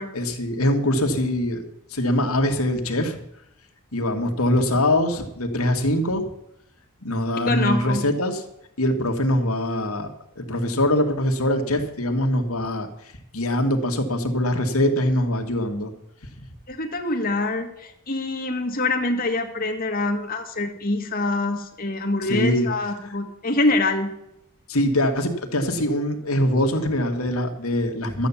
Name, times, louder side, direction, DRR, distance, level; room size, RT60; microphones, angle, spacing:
voice 1, 0.1-1.6 1.9-3.2 3.9-6.3 7.0-8.4 8.8-10.1 10.4-12.9 13.3-15.9 22.3-22.7 23.0-23.1 24.7-28.3, left 1 dB, 80° left, 4 dB, 2.0 m, -23 dB
voice 2, 7.5-8.1 16.7-24.1, left 2 dB, 40° left, 3 dB, 1.9 m, -25 dB
13.0 x 9.2 x 7.2 m, 0.81 s
head